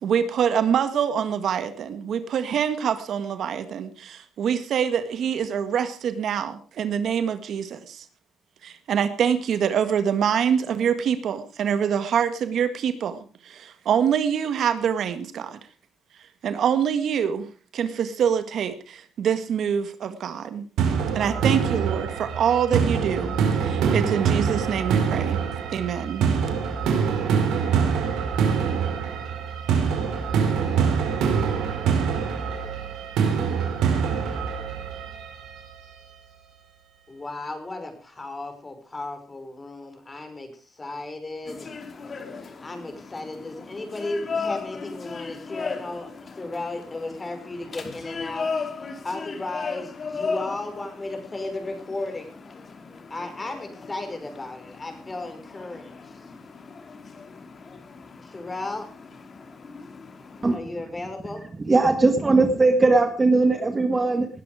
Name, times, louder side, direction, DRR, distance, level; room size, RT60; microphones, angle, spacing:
voice 1, 0.0-8.0 8.6-15.6 16.4-17.5 17.7-20.6 21.1-25.4 25.7-26.4, right 8 dB, 65° right, 11 dB, 1.7 m, -25 dB
sound 1, 20.8-35.7, right 6 dB, 80° right, 4.7 m, -24 dB
voice 2, 37.1-41.7 42.6-46.1 46.4-48.5 49.0-52.4 53.1-56.2 58.2-58.9 60.5-61.5, left 2 dB, 20° left, 6 dB, 5.4 m, -35 dB
sound 2, 41.5-60.6, left 4 dB, 40° left, 2.6 m, -37 dB
voice 3, 61.6-64.3, right 3 dB, 25° right, 7 dB, 1.8 m, -19 dB
19.5 x 11.5 x 5.0 m, 0.38 s
cardioid pair, 100°, 0 cm